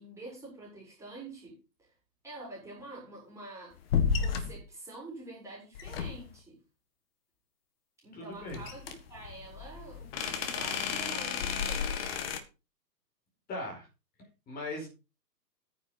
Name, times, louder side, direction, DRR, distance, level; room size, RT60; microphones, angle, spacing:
voice 1, 0.0-1.9 2.2-3.8 4.2-6.6 8.0-12.1, right 2 dB, 5° right, -5 dB, 5.3 m, -47 dB
sound 1, 3.9-4.6 5.7-6.4 8.5-12.4, left 6 dB, 35° left, 1.7 m, -32 dB
voice 2, 8.1-8.6 13.5-13.9 14.5-14.9, left 2 dB, 20° left, 1 dB, 4.7 m, -38 dB
9.9 x 9.6 x 4.2 m, 0.29 s
figure-of-eight pair, 130°, 50 cm